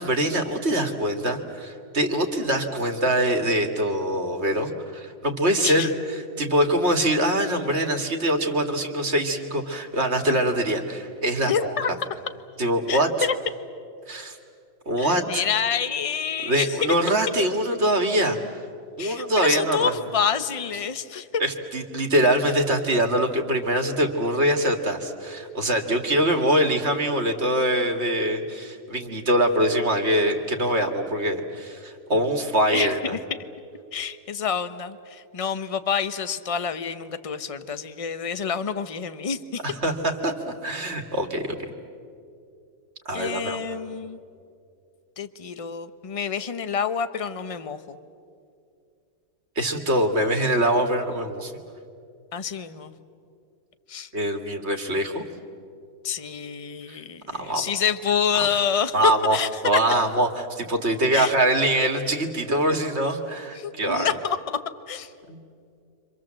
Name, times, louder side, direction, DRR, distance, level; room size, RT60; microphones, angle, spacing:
voice 1, 0.0-11.8 12.6-13.3 14.1-14.4 14.9-15.4 16.4-18.4 19.0-19.9 21.4-33.1 39.6-41.5 43.1-43.6 49.6-51.5 54.1-55.2 56.9-57.0 57.3-57.7 58.3-58.4 58.9-59.4 59.6-64.1 65.3-65.4, right 1 dB, 45° right, 4 dB, 2.3 m, -23 dB
voice 2, 5.6-5.9 11.5-11.9 12.9-13.3 15.0-16.9 19.0-21.4 32.7-33.0 33.9-39.6 43.1-44.2 45.2-48.0 52.3-52.9 53.9-54.1 56.0-59.8 61.1-61.3 63.6-65.1, left 7 dB, 30° left, 12 dB, 0.8 m, -27 dB
30.0 x 25.5 x 7.6 m, 2.4 s
omnidirectional pair, 1.6 m